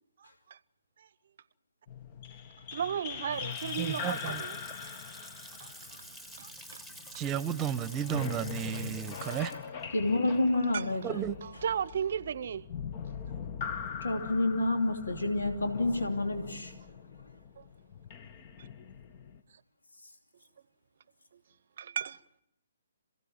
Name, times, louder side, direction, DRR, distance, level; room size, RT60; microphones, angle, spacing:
voice 1, 0.2-0.6 1.0-1.1 2.7-5.0 5.6-5.7 6.4-6.8 7.1-7.2 10.7-10.8 11.4-12.7 17.6-17.7 18.6-18.7 21.3-21.4 21.8-22.2, right 8 dB, 55° right, 0.8 m, -35 dB
sound 1, 1.9-6.9 7.9-19.4, left 7 dB, 35° left, 1.3 m, -42 dB
Water tap faucet / Sink (filling or washing) / Splash splatter, 3.3-12.0, equal, 10° left, 2.2 m, -49 dB
voice 2, 3.8-4.4 7.1-9.5 11.0-11.4, right 9 dB, 20° right, 1.2 m, -33 dB
voice 3, 9.2-9.7 9.9-11.2 14.0-16.7, left 2 dB, 80° left, 2.9 m, -29 dB
27.5 x 16.5 x 8.8 m
figure-of-eight pair, 135°, 0 cm